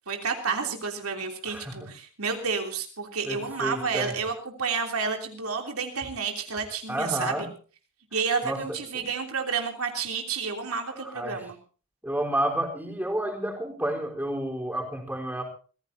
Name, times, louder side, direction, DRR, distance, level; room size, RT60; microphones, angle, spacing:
voice 1, 0.1-4.3 4.6-7.5 8.1-11.6, right 5 dB, 80° right, 3 dB, 3.2 m, -30 dB
voice 2, 1.4-1.9 3.2-4.2 6.9-7.5 8.4-8.6 8.9-9.0 11.0-11.4 12.0-15.4, right 1 dB, 10° right, 1 dB, 4.0 m, -30 dB
24.5 x 16.0 x 2.8 m, 0.38 s
head